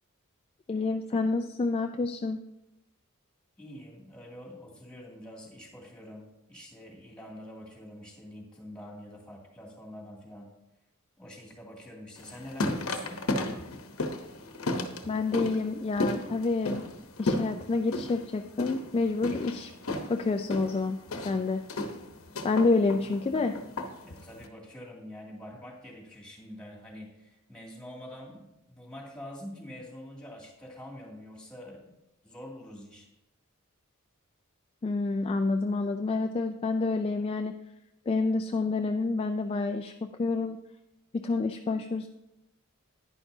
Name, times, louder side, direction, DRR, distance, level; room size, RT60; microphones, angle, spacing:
voice 1, 0.7-2.4 15.1-16.9 17.2-19.7 20.1-21.6 22.4-23.6 34.8-37.5 38.1-39.9 40.2-40.6 41.1-42.1, left 3 dB, 25° left, 6 dB, 0.3 m, -28 dB
voice 2, 3.6-10.5 11.2-13.2 24.0-32.0 32.2-33.1, left 1 dB, 5° left, -3 dB, 2.3 m, -46 dB
sound 1, 12.2-24.5, left 2 dB, 70° left, 0.9 m, -34 dB
10.5 x 9.9 x 2.7 m, 0.90 s
head